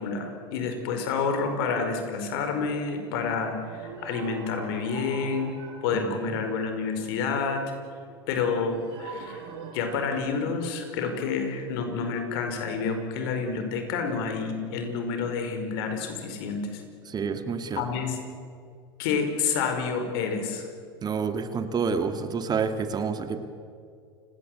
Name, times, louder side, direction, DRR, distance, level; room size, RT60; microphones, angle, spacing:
voice 1, 0.0-5.5 5.8-7.6 8.3-9.4 9.7-16.8 17.7-18.2 19.0-20.7, left 5 dB, 70° left, 6 dB, 5.1 m, -29 dB
sound 1, 3.4-7.1 8.7-11.3, right 5 dB, 70° right, 5.9 m, -44 dB
voice 2, 17.1-17.9 21.0-23.4, right 5 dB, 30° right, 8 dB, 2.2 m, -28 dB
29.5 x 17.5 x 8.1 m, 2.3 s
hypercardioid pair, 85°, 13 cm